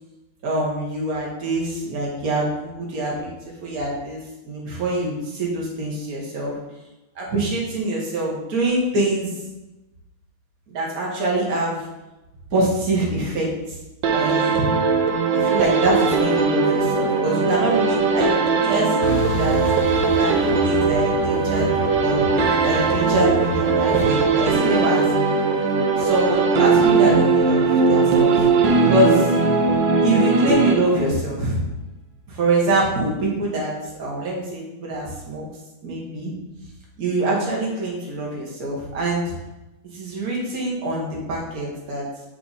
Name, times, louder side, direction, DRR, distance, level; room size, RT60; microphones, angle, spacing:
voice 1, 0.4-3.3 3.6-6.6 7.2-9.3 10.7-11.8 12.5-13.8 14.1-14.7 15.3-19.6 20.2-21.7 22.0-22.3 22.6-25.1 26.0-28.4 28.9-29.3 30.0-31.6 32.3-33.7 34.0-35.4 35.8-36.3 37.0-39.3 39.9-42.1, right 2 dB, 45° right, -4 dB, 2.0 m, -24 dB
sound 1, 14.0-31.2, right 4 dB, 65° right, 1.3 m, -19 dB
Truck, 19.0-24.0, left 2 dB, 65° left, 1.6 m, -30 dB
9.4 x 3.5 x 4.2 m, 0.97 s
omnidirectional pair, 2.4 m